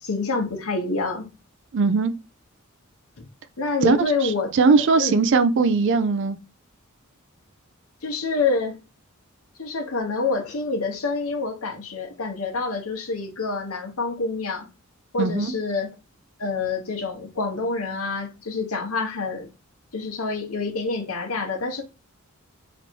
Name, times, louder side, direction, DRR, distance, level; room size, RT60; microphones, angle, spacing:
voice 1, 0.0-1.3 3.6-4.5 5.0-5.2 8.0-8.8 9.6-14.7 15.1-15.9 16.4-19.5 19.9-21.8, left 3 dB, 80° left, 1.0 m, -27 dB
voice 2, 1.7-2.1 3.8-4.0 4.2-6.4 15.2-15.5, right 4 dB, 60° right, 0.4 m, -19 dB
3.2 x 2.6 x 4.4 m
head